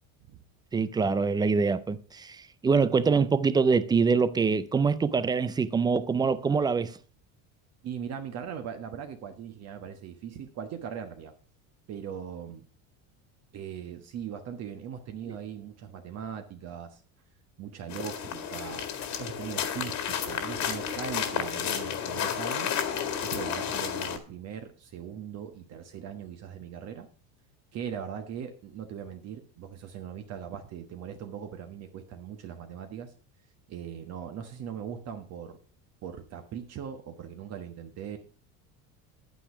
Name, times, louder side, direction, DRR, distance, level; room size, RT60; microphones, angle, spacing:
voice 1, 0.7-7.0, right 5 dB, 10° right, 0.4 m, -24 dB
voice 2, 7.8-11.3 11.9-12.6 13.5-17.0 17.6-18.9 19.2-22.8 23.2-27.1 27.7-33.1 33.7-35.6 36.0-38.2, right 8 dB, 40° right, 1.3 m, -40 dB
sound 1, 17.9-24.2, left 8 dB, 45° left, 1.9 m, -32 dB
10.0 x 9.2 x 4.8 m
cardioid pair, 145°, 39 cm